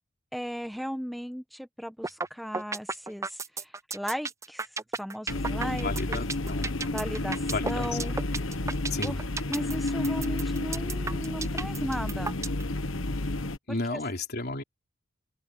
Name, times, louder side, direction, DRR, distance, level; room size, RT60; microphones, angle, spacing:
voice 1, 0.3-4.7 5.0-6.2 6.9-8.2 9.0-9.2 9.5-12.4 13.9-14.0, equal, ahead, 1.3 m, -36 dB
sound 1, 2.0-2.3 2.5-12.6, right 4 dB, 15° right, 0.5 m, -33 dB
sound 2, 5.3-13.6, left 2 dB, 85° left, 1.3 m, -31 dB
voice 2, 5.8-6.7 7.5-8.2 8.9-9.2 13.7-14.6, left 3 dB, 55° left, 3.6 m, -33 dB
open air
head